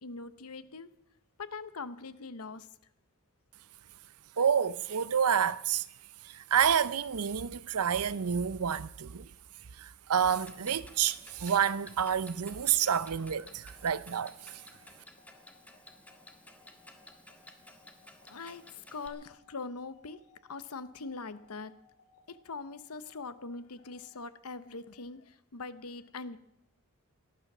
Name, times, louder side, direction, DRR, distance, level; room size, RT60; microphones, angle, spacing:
voice 1, 0.0-0.9 1.4-2.7 18.3-21.8 22.3-26.4, left 4 dB, 80° left, 1.0 m, -42 dB
voice 2, 4.4-5.8 6.3-9.3 9.8-14.3, right 8 dB, 90° right, 0.6 m, -29 dB
Clock, 10.3-19.1, left 1 dB, 5° left, 1.5 m, -55 dB
sound 1, 13.7-24.1, left 3 dB, 60° left, 2.3 m, -64 dB
18.0 x 12.5 x 6.1 m
head